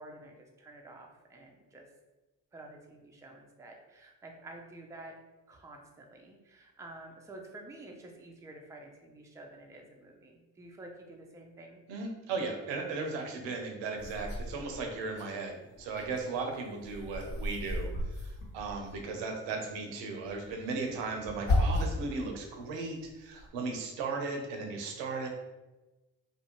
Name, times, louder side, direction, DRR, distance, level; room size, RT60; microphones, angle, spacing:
voice 1, 0.0-1.9 2.5-5.1 5.5-11.8, right 2 dB, 5° right, 1 dB, 0.4 m, -50 dB
voice 2, 11.9-17.9 18.2-25.3, right 3 dB, 75° right, 3 dB, 0.7 m, -36 dB
sound 1, 14.0-15.3 15.7-19.2 20.2-22.1 22.6-23.5, left 1 dB, 50° left, 1.0 m, -34 dB
2.5 x 2.1 x 2.9 m, 1.1 s
hypercardioid pair, 40°, 45 cm